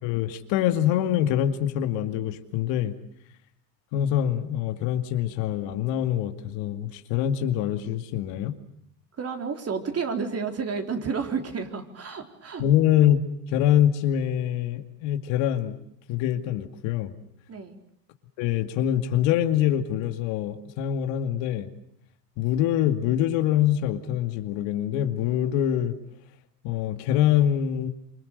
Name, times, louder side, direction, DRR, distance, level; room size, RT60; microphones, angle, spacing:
voice 1, 0.0-2.9 3.9-8.5 12.6-13.2 13.5-15.8 16.1-17.1 18.4-21.7 22.4-25.9 26.6-27.9, left 11 dB, 60° left, 8 dB, 2.4 m, -24 dB
voice 2, 9.2-12.7 17.5-17.8, right 5 dB, 30° right, 5 dB, 4.1 m, -31 dB
27.5 x 24.5 x 6.7 m, 0.71 s
hypercardioid pair, 90°, 49 cm